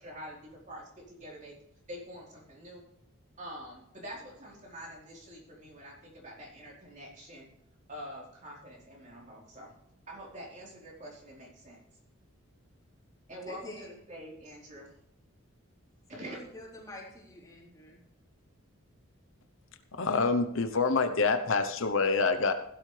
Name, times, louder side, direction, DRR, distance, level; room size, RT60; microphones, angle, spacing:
voice 1, 0.0-1.5 1.9-2.8 3.4-7.5 7.9-9.7 10.1-11.8 13.3-14.9 16.1-16.4, equal, 35° right, -3 dB, 4.1 m, -46 dB
voice 2, 13.5-13.9 16.1-18.0, left 1 dB, 15° left, -4 dB, 3.8 m, -47 dB
voice 3, 19.9-22.5, left 4 dB, 65° left, 9 dB, 0.9 m, -26 dB
15.5 x 12.0 x 3.4 m, 0.77 s
head